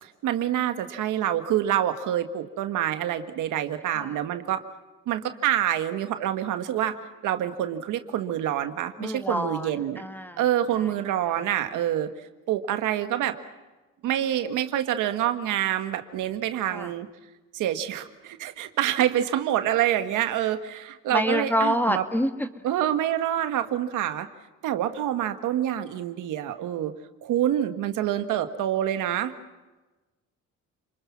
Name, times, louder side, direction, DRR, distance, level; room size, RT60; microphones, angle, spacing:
voice 1, 0.0-4.6 5.1-7.0 7.2-10.0 10.4-12.1 12.5-13.4 14.0-17.1 17.5-22.0 22.6-24.3 24.6-26.9 27.2-29.3, right 11 dB, 90° right, 8 dB, 1.7 m, -26 dB
voice 2, 9.0-9.7 10.0-10.4 10.7-10.9 11.3-11.4 16.7-16.9 21.1-22.6, equal, 5° left, 8 dB, 2.0 m, -27 dB
29.5 x 21.5 x 6.0 m, 1.2 s
cardioid pair, 90°, 30 cm